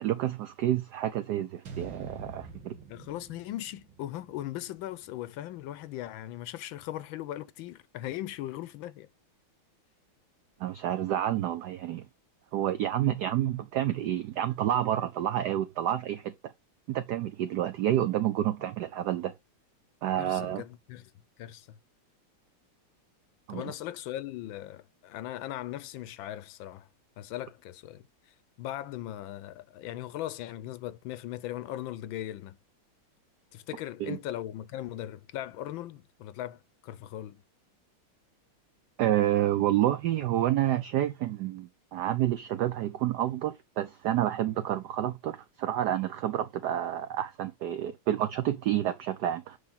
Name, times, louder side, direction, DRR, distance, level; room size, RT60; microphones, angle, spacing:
voice 1, 0.0-2.7 10.6-12.1 12.5-16.3 16.9-19.3 20.0-20.6 23.5-23.7 34.0-34.2 39.0-49.6, right 12 dB, 85° right, 0.9 m, -29 dB
sound 1, 1.7-5.9, right 5 dB, 60° right, 2.3 m, -47 dB
voice 2, 2.9-9.1 18.5-18.6 20.2-21.1 21.4-21.8 23.5-26.9 27.2-32.6 33.5-37.4, left 13 dB, 75° left, 1.3 m, -39 dB
9.5 x 3.5 x 4.0 m
omnidirectional pair, 2.3 m